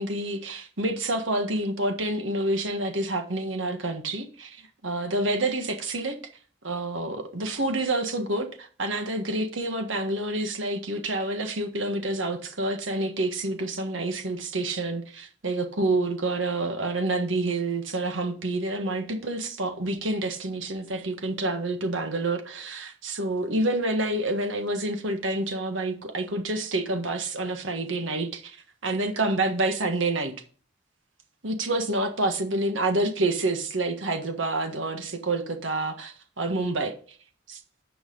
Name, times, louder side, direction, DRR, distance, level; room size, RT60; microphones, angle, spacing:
voice 1, 0.0-6.2 6.6-28.6 28.8-30.3 31.4-36.9 37.5-37.6, right 2 dB, 90° right, 1.6 m, -28 dB
9.3 x 5.8 x 5.3 m
head